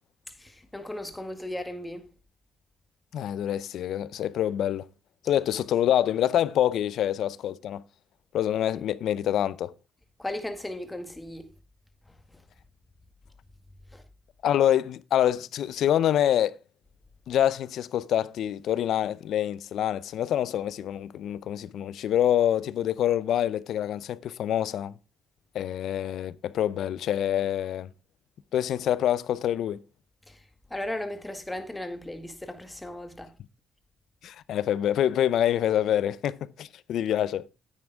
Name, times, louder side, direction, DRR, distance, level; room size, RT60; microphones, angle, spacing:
voice 1, 0.4-2.0 10.2-11.5 13.9-14.0 30.3-30.4 30.7-33.3, left 1 dB, 10° left, 1.9 m, -36 dB
voice 2, 3.1-4.9 5.2-7.8 8.3-9.7 14.4-16.6 17.3-24.9 25.5-27.9 28.5-29.8 34.2-37.5, left 11 dB, 75° left, 0.6 m, -26 dB
10.0 x 8.8 x 3.5 m
cardioid pair, 90°, 0 cm